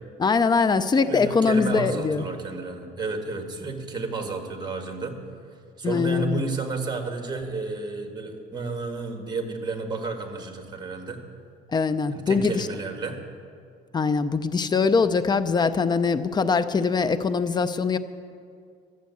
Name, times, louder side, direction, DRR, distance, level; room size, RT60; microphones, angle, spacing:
voice 1, 0.2-2.2 5.8-6.4 11.7-12.7 13.9-18.0, left 5 dB, 25° left, 12 dB, 0.5 m, -22 dB
voice 2, 1.1-5.2 5.8-11.2 12.1-13.2, right 3 dB, 25° right, 4 dB, 1.7 m, -31 dB
12.5 x 7.5 x 8.3 m, 2.3 s
cardioid pair, 110°, 17 cm